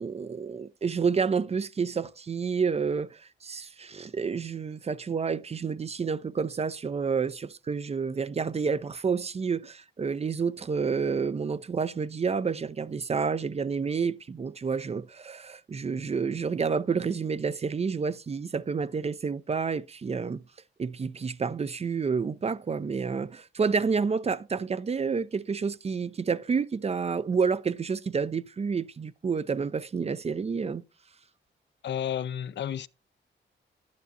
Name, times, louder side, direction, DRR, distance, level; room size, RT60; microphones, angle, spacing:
voice 1, 0.0-20.4 20.8-30.8, right 5 dB, 30° right, 0.4 m, -29 dB
voice 2, 31.8-32.9, left 9 dB, 60° left, 0.4 m, -31 dB
11.0 x 9.5 x 2.6 m
cardioid pair, 70°, 21 cm